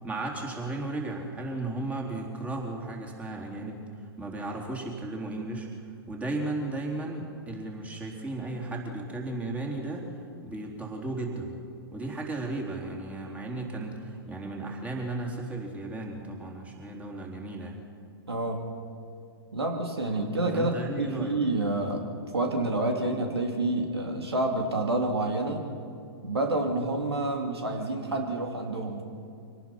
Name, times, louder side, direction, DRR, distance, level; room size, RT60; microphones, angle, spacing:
voice 1, 0.0-3.8 4.2-5.7 6.1-10.1 10.4-11.6 11.9-17.8 20.5-21.4, right 2 dB, 10° right, -1 dB, 3.8 m, -35 dB
voice 2, 18.3-18.6 19.5-22.0 22.3-25.6 26.2-29.0, right 2 dB, 85° right, 3 dB, 2.7 m, -28 dB
25.0 x 18.5 x 6.1 m, 2.4 s
hypercardioid pair, 115°, 13 cm